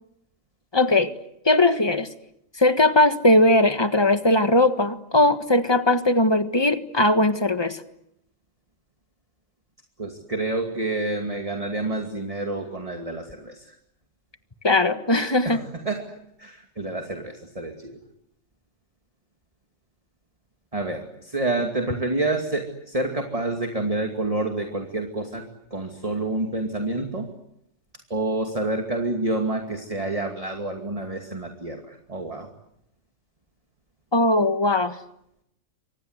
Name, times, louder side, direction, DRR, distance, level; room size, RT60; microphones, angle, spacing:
voice 1, 0.7-1.1 1.5-2.1 2.6-7.8 14.6-15.6 34.1-35.0, left 2 dB, 20° left, 9 dB, 1.6 m, -19 dB
voice 2, 10.0-13.6 15.4-16.1 16.4-18.0 20.7-25.4 25.7-27.3 28.1-32.5, right 2 dB, 25° right, 3 dB, 2.5 m, -28 dB
28.5 x 25.0 x 8.1 m, 0.79 s
omnidirectional pair, 1.4 m